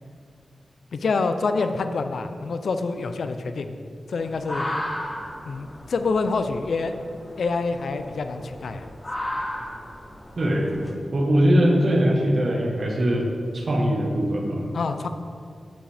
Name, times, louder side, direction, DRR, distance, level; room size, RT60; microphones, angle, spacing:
voice 1, 0.9-3.8 4.1-4.7 5.5-7.0 7.4-8.9 14.7-15.1, left 4 dB, 80° left, 8 dB, 0.4 m, -26 dB
sound 1, 4.2-10.9, left 1 dB, 25° left, 0.9 m, -35 dB
voice 2, 10.4-10.7 11.1-14.6, equal, 50° right, 0 dB, 1.3 m, -21 dB
8.6 x 7.4 x 3.4 m, 2.3 s
wide cardioid pair, 115°, 0 cm